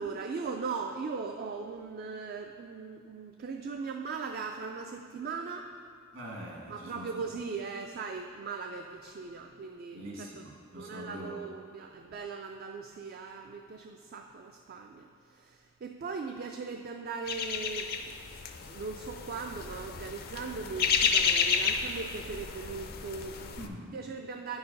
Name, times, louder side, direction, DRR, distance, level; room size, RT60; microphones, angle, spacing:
voice 1, 0.0-5.7 6.7-10.4 10.7-18.1 18.7-23.6 23.9-24.6, right 4 dB, 50° right, 4 dB, 0.3 m, -39 dB
voice 2, 6.1-7.3 9.9-11.4 23.6-23.9, equal, 65° right, -3 dB, 1.8 m, -44 dB
sound 1, 17.3-23.7, left 6 dB, 50° left, 0.4 m, -31 dB
9.1 x 4.7 x 5.2 m, 2.4 s
head